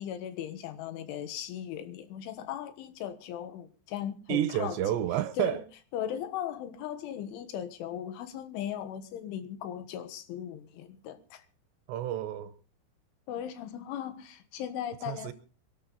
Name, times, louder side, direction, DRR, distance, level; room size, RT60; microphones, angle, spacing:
voice 1, 0.0-4.8 5.4-5.6 5.9-11.4 13.3-15.3, left 10 dB, 80° left, 3.7 m, -37 dB
voice 2, 4.3-5.6 11.9-12.5 15.1-15.3, right 12 dB, 75° right, 2.9 m, -30 dB
24.0 x 11.5 x 3.9 m
omnidirectional pair, 5.5 m